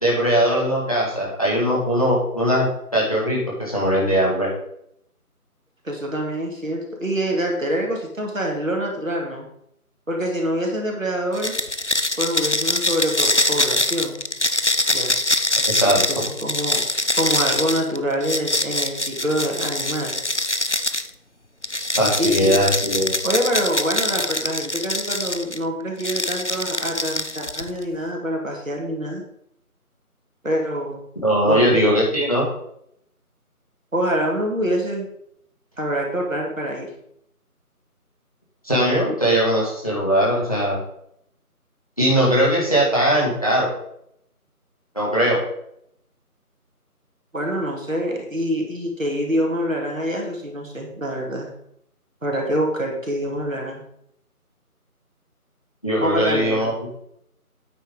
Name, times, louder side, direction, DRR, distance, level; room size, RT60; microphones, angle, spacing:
voice 1, 0.0-2.7 2.9-4.5 15.8-16.0 22.0-23.1 31.2-32.4 38.6-40.8 42.0-43.7 44.9-45.4 55.8-56.9, equal, 25° left, -5 dB, 1.9 m, -20 dB
voice 2, 5.8-9.4 10.1-11.6 12.2-14.2 14.9-15.2 16.1-16.8 17.2-20.2 22.2-22.5 23.2-29.2 30.4-31.0 31.4-32.0 33.9-35.1 35.8-36.9 47.3-51.5 52.2-53.8 56.0-56.7, equal, 60° right, 0 dB, 2.6 m, -25 dB
sound 1, 11.3-21.1 21.6-25.6 26.0-27.8, left 1 dB, 50° left, 0.5 m, -24 dB
9.0 x 5.7 x 5.3 m, 0.73 s
figure-of-eight pair, 175°, 46 cm